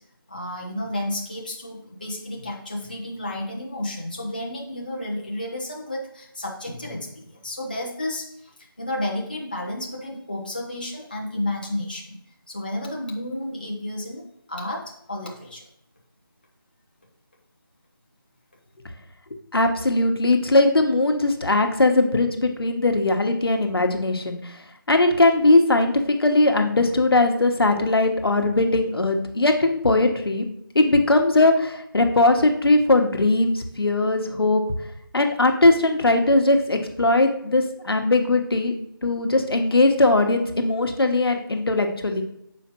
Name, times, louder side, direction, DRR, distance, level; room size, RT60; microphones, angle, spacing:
voice 1, 0.3-12.2 12.5-15.6, left 1 dB, 25° left, -2 dB, 0.5 m, -32 dB
voice 2, 19.5-24.5 24.9-25.9 26.2-30.4 30.7-34.6 35.1-42.2, left 2 dB, 85° left, 4 dB, 1.1 m, -20 dB
7.3 x 5.0 x 2.9 m, 0.74 s
figure-of-eight pair, 180°, 12 cm